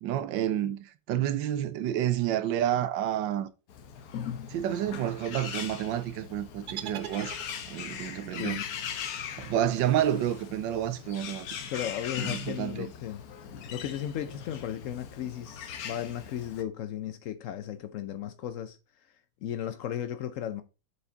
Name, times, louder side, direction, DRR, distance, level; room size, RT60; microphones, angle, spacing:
voice 1, 0.0-3.5 4.5-7.4 7.7-8.6 9.4-11.5 12.3-12.9, right 11 dB, 90° right, 1.4 m, -29 dB
Bird, 3.7-16.6, left 8 dB, 65° left, 1.1 m, -40 dB
sound 1, 6.7-8.0, right 11 dB, 70° right, 1.0 m, -41 dB
voice 2, 8.3-8.6 11.7-13.2 13.7-18.8 19.4-20.6, left 10 dB, 85° left, 0.7 m, -35 dB
6.9 x 5.0 x 3.9 m
omnidirectional pair, 2.0 m